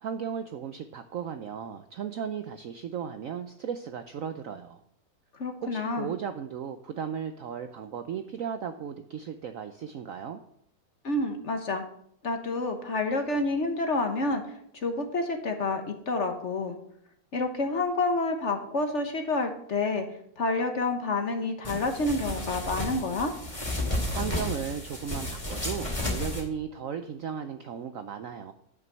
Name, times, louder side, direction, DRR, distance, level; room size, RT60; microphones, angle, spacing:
voice 1, 0.0-4.8 5.6-10.4 24.1-28.5, right 8 dB, 70° right, 8 dB, 0.8 m, -36 dB
voice 2, 5.4-6.2 11.0-11.8 12.2-14.4 14.8-16.8 17.3-20.0 20.4-23.3, left 2 dB, 45° left, 5 dB, 1.2 m, -28 dB
sound 1, 21.6-26.4, left 1 dB, 15° left, 2.4 m, -32 dB
11.0 x 6.1 x 6.7 m, 0.72 s
omnidirectional pair, 2.0 m